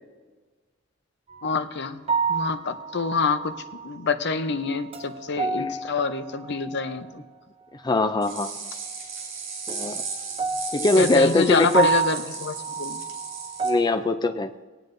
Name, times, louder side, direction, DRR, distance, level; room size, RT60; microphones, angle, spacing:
sound 1, 1.3-1.6 2.1-3.9 4.4-7.3 9.7-13.8, right 5 dB, 30° right, 0.6 m, -30 dB
voice 1, 1.4-2.0 2.3-3.5 3.8-7.1 11.0-13.0, left 4 dB, 60° left, 9 dB, 0.7 m, -26 dB
voice 2, 7.8-8.5 9.7-9.9 10.7-11.9 13.6-14.5, left 2 dB, 20° left, 7 dB, 0.4 m, -21 dB
sound 2, 8.2-13.7, right 5 dB, 70° right, 3.4 m, -35 dB
20.0 x 9.0 x 2.6 m, 1.3 s
head